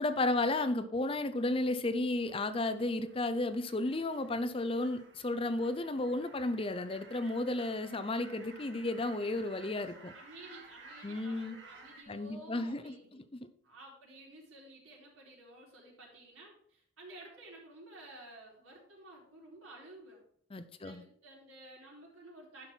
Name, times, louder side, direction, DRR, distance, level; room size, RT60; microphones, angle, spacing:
voice 1, 0.0-10.1 11.0-11.6 12.1-12.9 20.5-21.0, left 2 dB, 25° left, 11 dB, 0.6 m, -33 dB
sound 1, 2.2-12.0, right 3 dB, 60° right, 1.8 m, -56 dB
voice 2, 10.1-13.3 13.6-20.2 20.8-22.7, right 2 dB, 85° right, -3 dB, 4.1 m, -53 dB
11.0 x 5.7 x 4.5 m, 0.65 s
head